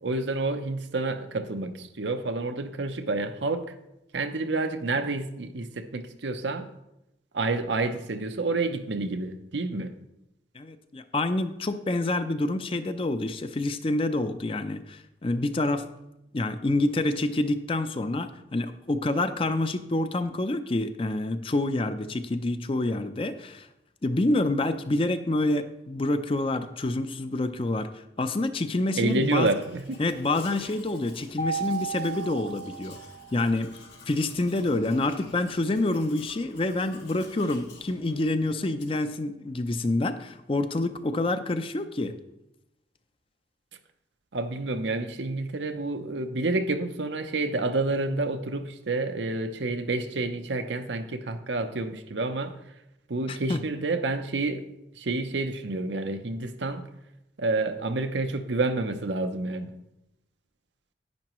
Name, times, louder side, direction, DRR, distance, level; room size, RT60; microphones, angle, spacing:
voice 1, 0.0-3.7 4.1-6.7 7.3-9.9 29.0-30.0 44.3-52.5 53.1-54.6 54.9-56.8 57.4-59.7, right 3 dB, 85° right, 8 dB, 0.7 m, -29 dB
voice 2, 10.6-15.9 16.3-23.7 24.0-27.9 28.2-29.5 30.0-33.0 33.3-33.7 34.1-42.1 53.3-53.6, left 2 dB, 30° left, 10 dB, 0.5 m, -27 dB
Domestic sounds home sounds, 29.0-39.1, left 4 dB, 80° left, 2.1 m, -51 dB
Mallet percussion, 31.4-33.6, right 5 dB, 55° left, 1.6 m, -34 dB
10.5 x 9.7 x 3.1 m, 0.88 s
head